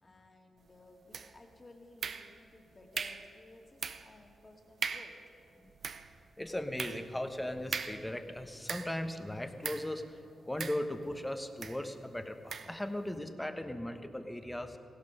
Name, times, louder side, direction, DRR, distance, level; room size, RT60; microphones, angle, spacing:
voice 1, 0.0-5.1, left 2 dB, 35° left, 2 dB, 2.1 m, -57 dB
sound 1, 1.1-1.5 2.0-2.6 2.9-3.3 3.8-4.2 4.5-4.6 4.8-5.2 5.6-9.1 9.6-10.0 10.6-11.2 11.6-11.8 12.5-12.8, right 5 dB, 60° right, 0.6 m, -40 dB
voice 2, 6.4-14.8, left 1 dB, 10° left, 7 dB, 1.2 m, -38 dB
16.0 x 12.0 x 5.6 m, 2.5 s
cardioid pair, 55°, 0 cm